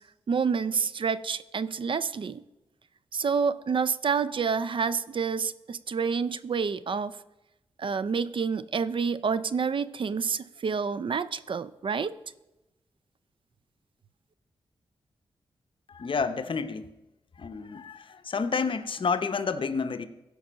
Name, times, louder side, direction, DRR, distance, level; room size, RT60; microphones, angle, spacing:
voice 1, 0.3-2.4 3.1-7.1 7.8-12.2, right 5 dB, 55° right, 0.5 m, -28 dB
voice 2, 15.9-16.9 17.4-20.1, left 5 dB, 55° left, 0.8 m, -30 dB
15.5 x 5.4 x 6.2 m
cardioid pair, 60°, 10 cm